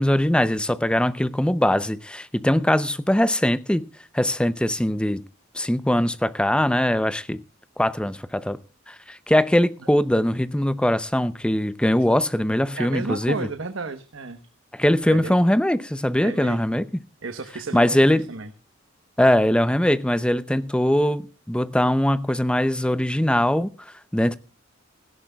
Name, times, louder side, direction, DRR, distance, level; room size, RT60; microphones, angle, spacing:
voice 1, 0.0-3.9 4.1-5.2 5.5-7.4 7.8-8.6 8.9-13.5 14.7-16.9 17.7-18.3 19.2-24.4, left 1 dB, 5° left, 0.6 m, -21 dB
voice 2, 12.7-14.4 15.1-15.3 16.2-16.6 17.2-18.5, right 3 dB, 80° right, 1.1 m, -32 dB
17.5 x 16.0 x 2.3 m
head